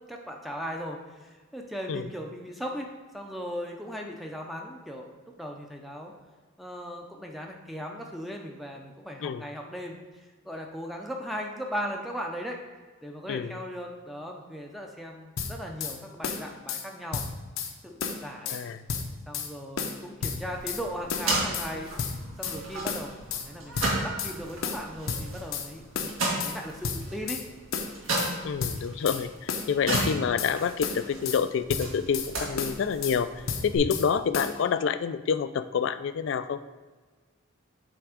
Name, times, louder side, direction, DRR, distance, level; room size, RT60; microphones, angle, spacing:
voice 1, 0.1-5.1 5.4-6.1 6.6-12.6 13.0-17.2 17.8-18.6 19.3-27.4 33.9-34.1, equal, ahead, 1 dB, 0.5 m, -38 dB
voice 2, 13.3-13.6 18.5-18.8 28.4-36.6, left 6 dB, 60° left, 12 dB, 0.3 m, -28 dB
sound 1, 15.4-16.0 16.2-16.8 17.1-17.7 18.0-18.6 18.9-19.5 19.8-20.8 21.1-21.7 22.0-22.6 22.9-23.5 23.8-24.3 24.6-25.7 25.9-26.6 26.8-27.4 27.7-28.3 28.6-29.2 29.5-30.5 30.8-31.4 31.7-32.3 32.6-33.2 33.5-34.1 34.3-34.6, left 5 dB, 75° left, 0.7 m, -32 dB
sound 2, 20.5-33.8, right 2 dB, 75° right, 1.7 m, -35 dB
7.9 x 3.4 x 5.0 m, 1.3 s
head